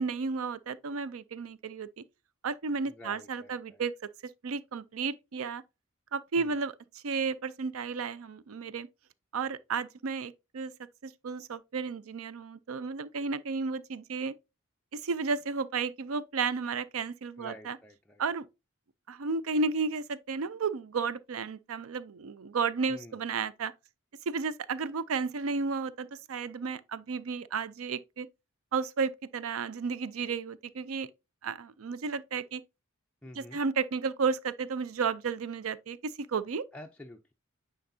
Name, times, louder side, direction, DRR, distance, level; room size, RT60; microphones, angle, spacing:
voice 1, 0.0-1.9 2.4-3.9 4.4-5.6 6.1-6.7 7.0-8.9 9.3-10.7 11.0-14.3 14.9-17.8 18.2-18.5 19.1-23.7 24.3-28.3 28.7-31.1 31.4-32.6 33.4-36.6, right 5 dB, 85° right, 0.5 m, -33 dB
voice 2, 2.8-3.8 6.4-6.6 17.4-18.2 22.9-23.2 33.2-33.6 36.7-37.3, left 1 dB, 5° left, 0.5 m, -49 dB
9.4 x 3.9 x 2.7 m
head